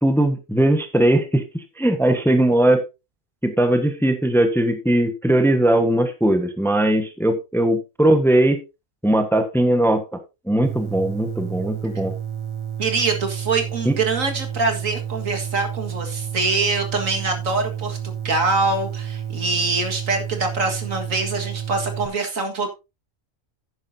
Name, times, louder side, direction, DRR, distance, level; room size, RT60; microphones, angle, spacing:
voice 1, 0.0-2.8 3.4-8.6 9.0-10.0 10.5-12.1 13.8-14.0, right 1 dB, ahead, 1.2 m, -19 dB
sound 1, 10.6-22.1, right 9 dB, 25° right, 0.9 m, -30 dB
voice 2, 12.8-22.7, right 3 dB, 75° right, 2.2 m, -24 dB
11.5 x 9.6 x 2.8 m
omnidirectional pair, 1.4 m